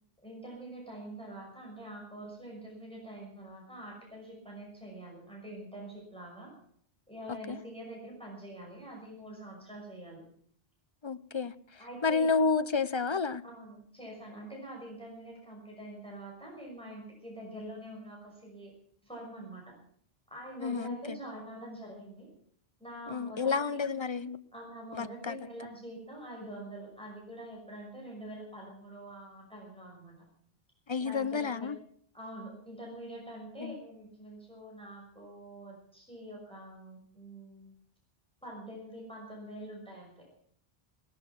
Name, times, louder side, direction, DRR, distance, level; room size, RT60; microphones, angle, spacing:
voice 1, 0.2-6.5 7.1-10.2 11.8-12.3 13.4-18.7 19.0-19.7 20.3-22.3 22.8-23.8 24.5-30.2 31.0-31.7 32.1-37.8 38.4-40.3, right 1 dB, 5° left, 6.1 m, -45 dB
voice 2, 11.0-13.4 20.6-21.2 23.1-24.4 24.9-25.4 30.9-31.8 33.6-33.7, left 4 dB, 30° left, 0.6 m, -30 dB
19.0 x 12.0 x 6.0 m
omnidirectional pair, 1.0 m